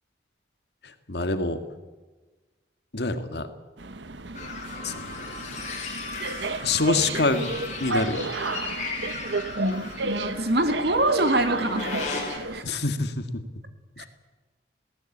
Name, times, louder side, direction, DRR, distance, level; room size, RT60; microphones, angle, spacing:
voice 1, 0.8-1.6 2.9-3.5 4.8-5.7 6.6-7.5 7.8-8.3 12.6-13.3 14.0-14.1, left 3 dB, 65° left, 8 dB, 1.9 m, -26 dB
sound 1, 3.8-12.6, right 3 dB, 80° right, 1.1 m, -33 dB
sound 2, 4.3-12.4, left 4 dB, 40° left, 4.7 m, -36 dB
voice 2, 9.6-12.8 14.0-14.1, right 1 dB, 60° right, 8 dB, 2.2 m, -25 dB
21.0 x 17.5 x 8.6 m, 1.3 s
head